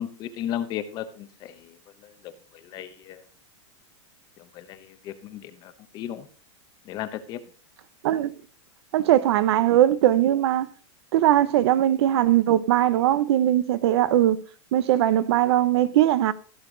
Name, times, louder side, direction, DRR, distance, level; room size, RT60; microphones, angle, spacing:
voice 1, 0.0-3.2 4.4-6.3 6.8-7.4, left 11 dB, 25° left, 0.8 m, -35 dB
voice 2, 8.9-10.7 11.1-14.4 14.7-16.3, right 12 dB, 60° right, 0.7 m, -20 dB
15.0 x 6.7 x 3.8 m
supercardioid pair, 165°, 16 cm